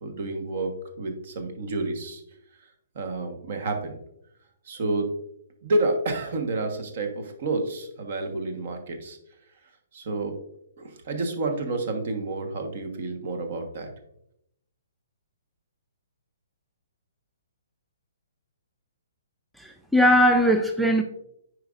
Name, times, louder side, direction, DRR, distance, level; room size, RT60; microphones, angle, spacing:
voice 1, 0.0-2.2 2.9-4.0 4.6-5.1 5.6-9.2 9.9-10.4 10.8-13.9, right 2 dB, 50° right, 6 dB, 1.3 m, -29 dB
voice 2, 19.6-21.0, equal, ahead, 4 dB, 0.4 m, -20 dB
9.5 x 4.7 x 2.5 m, 0.77 s
figure-of-eight pair, 125°, 0 cm